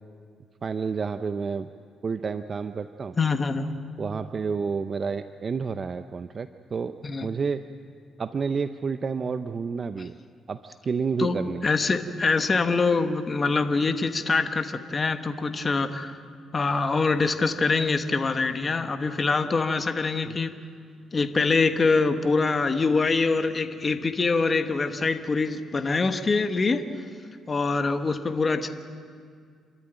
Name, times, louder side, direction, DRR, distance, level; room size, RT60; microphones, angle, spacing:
voice 1, 0.6-1.7 2.0-3.2 4.0-7.7 8.2-10.2 10.5-11.7 20.2-20.4, right 5 dB, 40° right, 10 dB, 0.6 m, -30 dB
voice 2, 3.2-3.7 7.0-7.3 11.2-11.4 11.6-16.2 16.5-20.5 21.1-26.8 27.5-28.7, left 4 dB, 35° left, 8 dB, 1.3 m, -24 dB
28.0 x 13.5 x 9.2 m, 2.1 s
cardioid pair, 90°, 0 cm